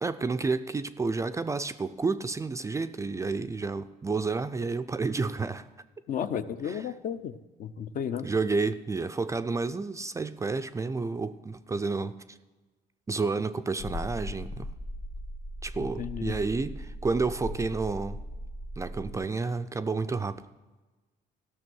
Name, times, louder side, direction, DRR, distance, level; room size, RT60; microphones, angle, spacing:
voice 1, 0.0-5.7 6.6-6.8 8.2-12.4 13.1-14.7 15.6-18.2 18.8-20.4, right 4 dB, 20° right, 0.4 m, -30 dB
voice 2, 6.1-8.3 15.8-16.3, left 8 dB, 55° left, 0.6 m, -34 dB
sound 1, 13.8-19.2, left 1 dB, 70° left, 2.3 m, -38 dB
15.0 x 6.2 x 6.2 m
cardioid pair, 110°, 17 cm